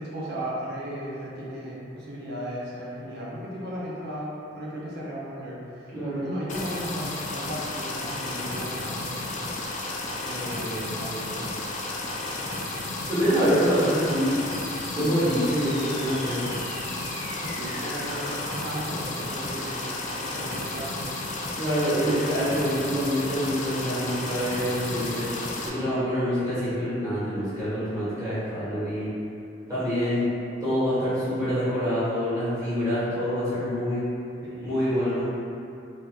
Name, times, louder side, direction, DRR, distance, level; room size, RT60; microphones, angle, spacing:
voice 1, 0.0-9.3 10.2-11.5 17.4-19.9 20.2-21.2 34.5-34.8, equal, 55° right, -6 dB, 0.5 m, -36 dB
voice 2, 5.9-6.3 13.1-14.3 14.9-16.4 21.5-25.2 25.6-29.1 29.7-30.3 30.6-34.0 34.6-35.3, equal, 15° right, -13 dB, 1.3 m, -26 dB
sound 1, 6.5-25.7, left 2 dB, 40° left, 0.3 m, -33 dB
sound 2, 14.5-19.5, equal, ahead, 1.4 m, -42 dB
3.3 x 2.8 x 2.4 m, 2.6 s
head